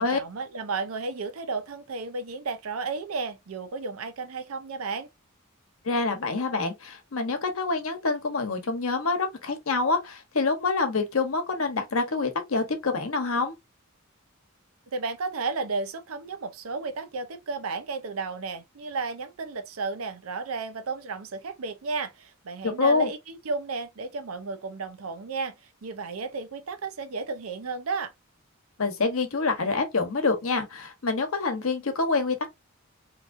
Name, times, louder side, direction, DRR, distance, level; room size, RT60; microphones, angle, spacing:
voice 1, 0.0-5.1 14.9-25.5 25.8-28.1, right 4 dB, 85° right, 0.6 m, -33 dB
voice 2, 5.8-13.5 22.6-23.1 28.8-32.5, left 3 dB, 75° left, 0.9 m, -26 dB
3.6 x 2.9 x 2.5 m
head